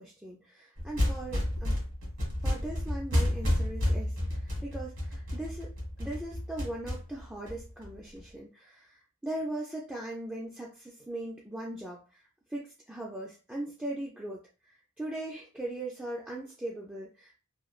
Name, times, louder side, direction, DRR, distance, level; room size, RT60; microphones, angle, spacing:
voice 1, 0.0-1.8 2.4-5.7 6.0-17.4, right 1 dB, 5° right, -4 dB, 0.3 m, -39 dB
sound 1, 0.8-8.2, left 1 dB, 65° right, 1.3 m, -31 dB
3.0 x 2.2 x 2.4 m, 0.34 s
head